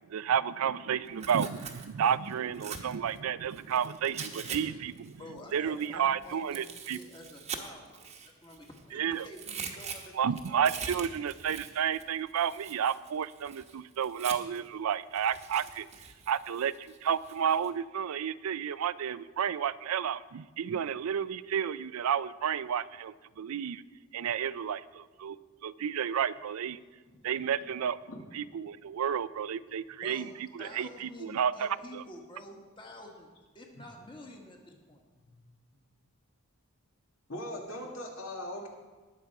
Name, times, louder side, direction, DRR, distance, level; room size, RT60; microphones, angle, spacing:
voice 1, 0.1-5.2 5.5-7.0 8.9-9.3 10.2-15.9 16.3-23.8 24.1-25.4 25.6-26.8 27.2-28.0 28.3-30.3 30.5-32.0, right 8 dB, 85° right, 16 dB, 0.4 m, -31 dB
Tearing, 1.1-4.6 4.9-8.8 9.1-14.7 15.1-17.7, right 6 dB, 30° right, 1.0 m, -43 dB
voice 2, 5.2-11.0 30.0-30.3 30.6-35.0, left 1 dB, 25° left, 1 dB, 1.5 m, -49 dB
voice 3, 37.3-38.7, left 1 dB, 75° left, 0 dB, 2.3 m, -40 dB
19.0 x 6.7 x 4.7 m, 1.3 s
head